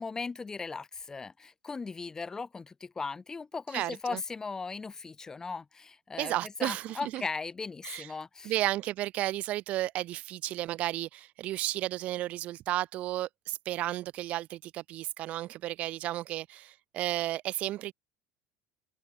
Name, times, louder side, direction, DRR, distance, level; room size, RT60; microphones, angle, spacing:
voice 1, 0.0-8.5, left 4 dB, 20° left, 1.3 m, -38 dB
voice 2, 3.7-4.2 6.2-7.2 7.8-8.1 8.4-17.9, right 15 dB, 55° right, 1.0 m, -33 dB
open air
hypercardioid pair, 90°, 3 cm